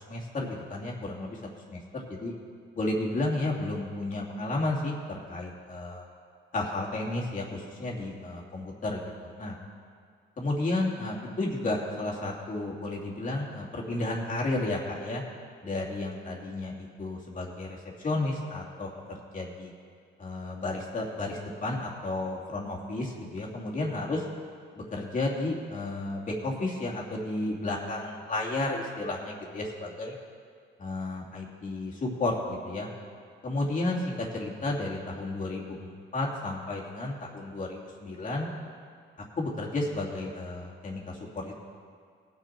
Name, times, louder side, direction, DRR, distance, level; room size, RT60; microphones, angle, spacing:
voice 1, 0.1-1.4 1.7-1.8 2.1-2.3 2.7-6.0 6.5-9.6 10.4-15.2 15.6-18.9 19.3-19.7 20.2-24.2 24.9-30.1 30.8-32.9 33.4-38.5 39.3-41.5, left 2 dB, 40° left, -3 dB, 2.7 m, -32 dB
19.0 x 6.7 x 4.5 m, 2.2 s
cardioid pair, 90°, 20 cm